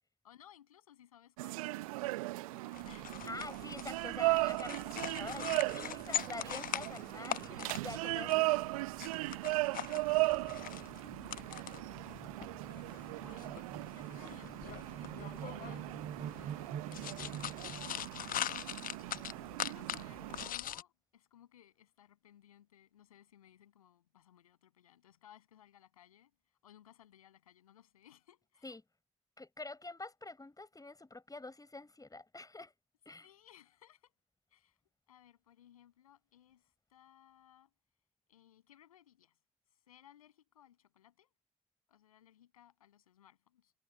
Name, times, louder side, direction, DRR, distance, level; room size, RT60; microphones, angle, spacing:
voice 1, 0.2-3.3 7.2-8.0 10.1-18.8 19.6-28.8 33.2-34.2 34.5-34.8 35.1-37.7 38.3-39.4 39.9-41.3 41.9-43.7, left 11 dB, 85° left, 7.9 m, -62 dB
sound 1, 1.4-20.5, right 21 dB, 75° right, 0.8 m, -37 dB
sound 2, 2.7-20.8, left 11 dB, 50° left, 0.9 m, -43 dB
voice 2, 3.3-8.7 28.6-28.8 29.4-32.7 33.1-33.3, left 2 dB, 20° left, 7.5 m, -46 dB
sound 3, 8.9-18.2, right 8 dB, 55° right, 4.4 m, -49 dB
figure-of-eight pair, 40°, 18 cm